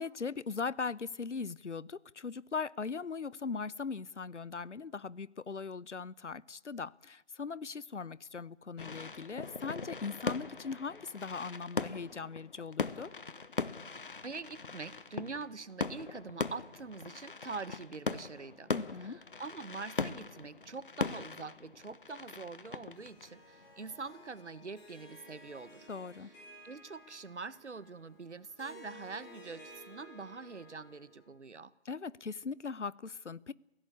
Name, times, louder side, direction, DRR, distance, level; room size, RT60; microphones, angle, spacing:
voice 1, 0.0-13.1 18.7-19.2 25.9-26.3 31.9-33.5, left 5 dB, 85° left, 0.9 m, -39 dB
sound 1, 8.8-24.1, left 4 dB, 50° left, 1.0 m, -40 dB
voice 2, 14.2-18.7 19.0-25.9 26.2-26.3 26.6-31.7, right 4 dB, 75° right, 1.3 m, -44 dB
Harp, 22.9-31.4, equal, 15° left, 5.6 m, -55 dB
27.5 x 16.5 x 8.5 m
figure-of-eight pair, 165°, 35 cm